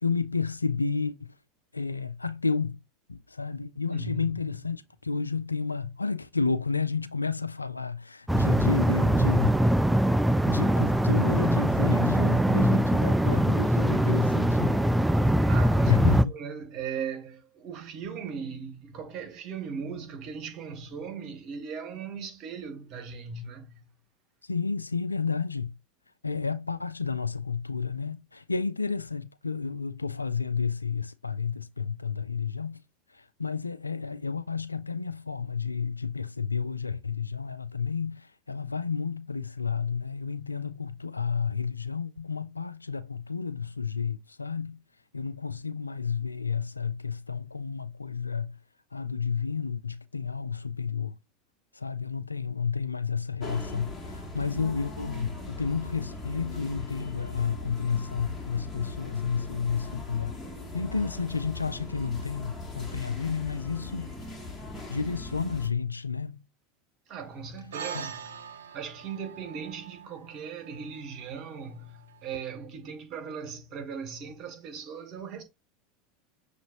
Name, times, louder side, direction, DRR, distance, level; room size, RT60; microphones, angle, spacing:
voice 1, 0.0-1.3 1.7-2.8 3.1-9.6 10.5-14.8 15.9-16.2 24.5-25.7 26.2-32.8 33.4-44.8 45.1-48.6 48.9-51.1 51.8-60.3 60.7-64.1 64.9-66.4 67.9-68.1, left 5 dB, 85° left, 0.3 m, -31 dB
voice 2, 3.9-4.3 15.5-23.8 67.1-68.2 68.7-75.4, right 6 dB, 45° right, 1.3 m, -38 dB
sound 1, 8.3-16.2, right 1 dB, 5° right, 0.3 m, -22 dB
sound 2, 53.4-65.7, left 2 dB, 20° left, 1.5 m, -40 dB
sound 3, 67.7-72.4, right 7 dB, 70° right, 0.5 m, -43 dB
6.3 x 2.6 x 3.0 m
figure-of-eight pair, 80°, 0 cm